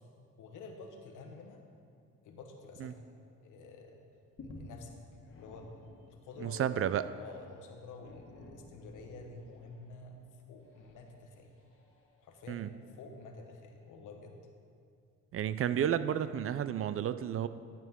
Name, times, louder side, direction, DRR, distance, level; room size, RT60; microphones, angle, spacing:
voice 1, 0.4-1.6 2.2-3.0 3.4-4.1 4.4-4.9 5.4-5.7 6.1-10.2 10.5-11.5 12.2-12.7 12.9-14.4, left 3 dB, 85° left, 3 dB, 1.2 m, -49 dB
sound 1, 3.5-3.7 4.0-12.6 13.3-13.4, left 2 dB, 45° left, 1.6 m, -54 dB
voice 2, 6.4-7.1 12.5-12.7 15.3-17.5, right 9 dB, 50° right, 14 dB, 0.4 m, -32 dB
12.0 x 8.4 x 3.7 m, 2.3 s
cardioid pair, 90°, 30 cm